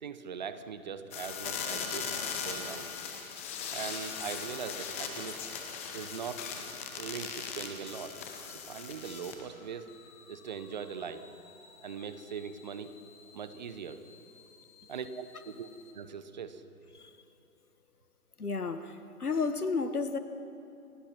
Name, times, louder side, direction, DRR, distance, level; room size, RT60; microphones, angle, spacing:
voice 1, 0.0-2.1 2.4-2.9 3.7-5.4 5.9-6.5 7.0-8.2 8.7-9.9 10.3-11.3 11.8-12.9 13.3-14.0 14.9-15.7 15.9-16.6, right 6 dB, 30° right, 11 dB, 0.8 m, -40 dB
sound 1, 1.1-9.5 9.9-15.9, left 6 dB, 10° left, 0.7 m, -41 dB
voice 2, 18.4-18.9 19.2-20.2, left 4 dB, 80° left, 10 dB, 1.6 m, -31 dB
29.0 x 16.0 x 6.0 m, 2.8 s
figure-of-eight pair, 140°, 44 cm